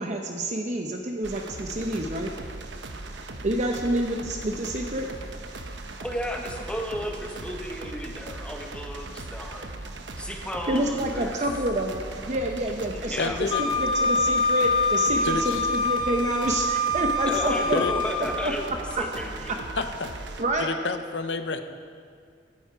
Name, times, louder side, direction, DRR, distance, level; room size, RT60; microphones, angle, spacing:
voice 1, 0.0-2.3 3.4-5.1 10.7-17.8 18.4-18.5 20.4-20.7, right 1 dB, 40° right, 3 dB, 0.8 m, -28 dB
sound 1, 1.2-20.4, right 2 dB, 75° right, 0.9 m, -39 dB
voice 2, 6.0-9.7 10.2-11.4 13.0-13.6 17.3-19.6, equal, 5° left, 1 dB, 1.2 m, -34 dB
voice 3, 13.2-13.6 15.2-15.5 17.7-17.9 19.8-19.9 20.6-21.6, left 4 dB, 70° left, 9 dB, 0.8 m, -28 dB
Wind instrument woodwind instrument, 13.5-18.2, left 2 dB, 30° left, 1.2 m, -25 dB
14.0 x 10.5 x 4.7 m, 2.1 s
head